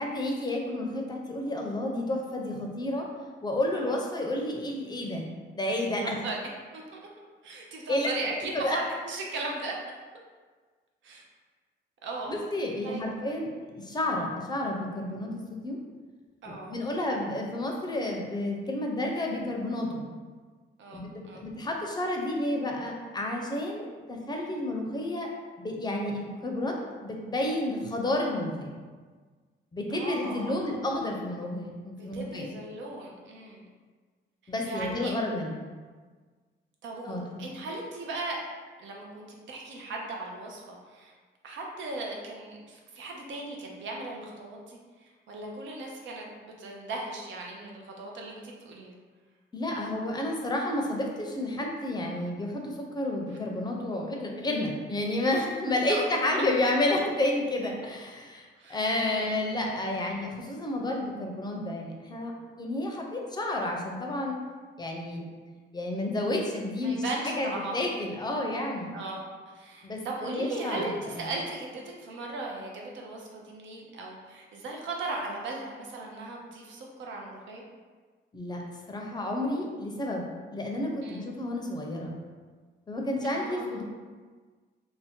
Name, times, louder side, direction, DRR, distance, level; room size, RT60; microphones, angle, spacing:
voice 1, 0.0-3.1 3.4-5.3 5.5-6.2 7.9-8.1 8.6-8.8 12.3-15.8 16.4-20.1 20.9-25.3 25.6-28.7 29.7-32.5 34.5-35.5 37.0-37.4 49.5-58.4 58.7-62.3 62.6-64.4 64.8-65.3 65.7-68.9 69.8-70.9 71.2-71.3 78.3-78.6 78.9-82.1 82.9-83.8, left 1 dB, 20° left, 0 dB, 0.5 m, -31 dB
voice 2, 6.0-6.4 6.7-7.1 7.4-9.7 11.0-11.2 12.0-12.3 12.8-13.0 16.4-16.7 20.8-21.4 29.9-30.8 32.0-33.6 34.4-35.1 36.8-38.4 38.8-41.1 41.4-48.9 55.9-56.0 56.3-56.4 58.6-58.8 59.1-59.3 66.8-67.8 68.9-77.6 81.0-81.2 83.2-83.8, right 2 dB, 70° right, -1 dB, 0.6 m, -38 dB
2.6 x 2.2 x 3.6 m, 1.5 s
cardioid pair, 90°, 20 cm